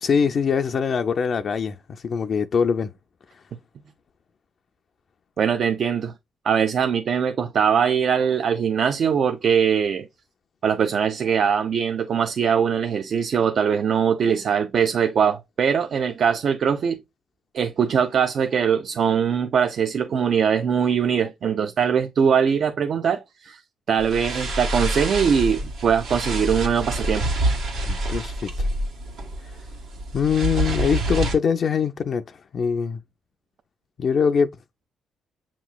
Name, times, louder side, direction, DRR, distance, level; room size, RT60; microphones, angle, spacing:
voice 1, 0.0-2.9 3.3-3.4 27.9-28.7 30.1-33.0 34.0-34.5, left 6 dB, 50° left, 0.3 m, -23 dB
voice 2, 5.4-6.1 6.4-10.1 10.6-17.0 17.5-23.6 23.9-27.2, right 7 dB, 55° right, 0.4 m, -21 dB
sound 1, 24.0-31.4, right 1 dB, 75° right, 1.4 m, -27 dB
7.1 x 2.9 x 2.2 m
cardioid pair, 90°, 0 cm